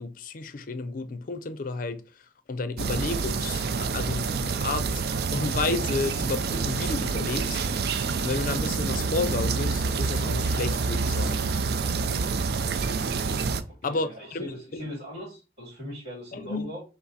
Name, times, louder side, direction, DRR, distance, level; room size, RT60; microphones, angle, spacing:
voice 1, 0.0-2.0 2.5-5.0 5.3-11.5 13.8-14.9 16.3-16.7, left 3 dB, 50° left, 0.5 m, -32 dB
sound 1, 2.8-13.6, right 4 dB, 60° right, 0.4 m, -27 dB
voice 2, 13.7-16.8, left 1 dB, 40° right, 2.0 m, -40 dB
5.6 x 2.0 x 4.0 m
head